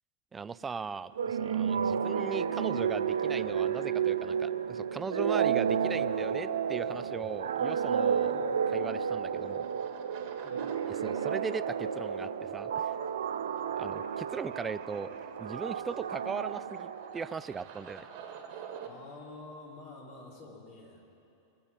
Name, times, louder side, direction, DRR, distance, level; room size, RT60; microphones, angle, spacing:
voice 1, 0.3-8.3 8.7-9.7 10.9-12.9 13.8-15.1 15.4-18.1, right 5 dB, 15° right, 16 dB, 0.4 m, -38 dB
sound 1, 0.9-18.9, right 6 dB, 45° right, 1.7 m, -50 dB
sound 2, 1.2-17.5, right 7 dB, 65° right, 0.6 m, -31 dB
voice 2, 5.7-6.4 8.2-8.6 10.4-10.7 18.8-21.0, left 2 dB, 45° left, -2 dB, 3.4 m, -49 dB
22.0 x 8.6 x 7.2 m, 2.7 s
figure-of-eight pair, 90°, 0 cm